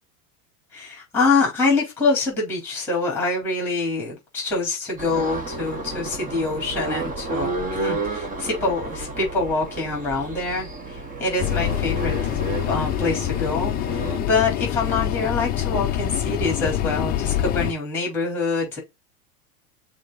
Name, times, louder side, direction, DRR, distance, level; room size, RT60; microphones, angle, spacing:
voice 1, 0.7-12.4 12.7-18.8, left 3 dB, 5° left, 3.8 m, -25 dB
sound 1, 5.0-14.2, right 2 dB, 20° right, 1.1 m, -31 dB
sound 2, 11.4-17.7, left 11 dB, 20° left, 0.5 m, -25 dB
6.4 x 3.8 x 4.1 m
supercardioid pair, 145°, 43 cm